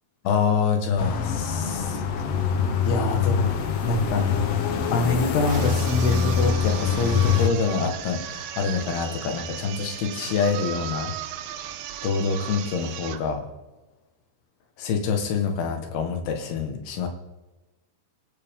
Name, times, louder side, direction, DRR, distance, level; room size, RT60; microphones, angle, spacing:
voice 1, 0.3-2.0 2.9-3.5 3.8-4.4 4.9-11.1 12.0-13.4 14.8-17.1, left 4 dB, 85° left, 4 dB, 3.7 m, -26 dB
sound 1, 1.0-7.5, left 7 dB, 70° left, 1.4 m, -24 dB
sound 2, 5.4-13.3, right 11 dB, 85° right, 2.8 m, -36 dB
26.0 x 12.0 x 3.8 m, 1.1 s
omnidirectional pair, 4.5 m